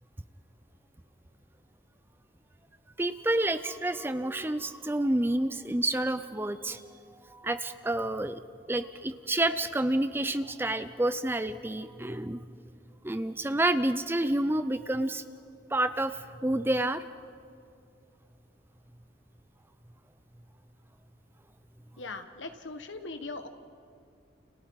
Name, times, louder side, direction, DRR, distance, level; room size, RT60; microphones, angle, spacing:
voice 1, 3.0-6.8 7.3-8.4 8.7-12.4 13.0-15.2 15.7-17.0, right 1 dB, 10° right, 11 dB, 0.5 m, -29 dB
voice 2, 22.0-23.5, left 3 dB, 90° left, 8 dB, 1.5 m, -40 dB
30.0 x 29.5 x 4.8 m, 2.3 s
head